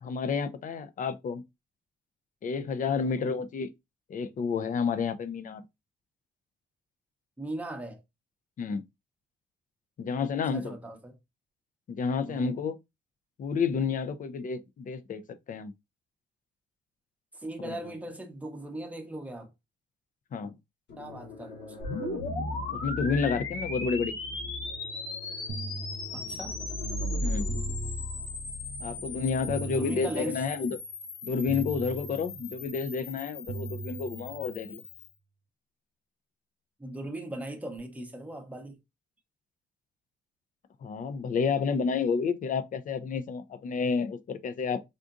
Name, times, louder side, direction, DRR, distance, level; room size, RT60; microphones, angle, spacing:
voice 1, 0.0-1.4 2.4-3.7 4.1-5.6 8.6-8.8 10.0-10.7 11.9-12.8 13.4-15.2 15.5-15.7 17.6-17.8 20.3-20.6 22.7-24.2 27.2-27.5 28.8-30.8 31.2-34.8 40.8-44.8, left 5 dB, 40° left, 0.4 m, -30 dB
voice 2, 7.4-8.0 10.5-11.1 12.2-12.5 17.3-19.5 21.0-21.7 26.1-26.5 29.7-30.4 36.8-38.8, right 1 dB, 5° right, 0.7 m, -38 dB
sound 1, 20.9-29.6, left 1 dB, 60° left, 1.2 m, -38 dB
sound 2, 21.8-35.1, left 3 dB, 85° left, 0.8 m, -39 dB
sound 3, 25.5-26.7 27.5-28.7 29.5-30.7 31.5-32.7 33.5-34.7, right 4 dB, 35° right, 0.4 m, -40 dB
3.7 x 2.5 x 2.4 m
cardioid pair, 90°, 20 cm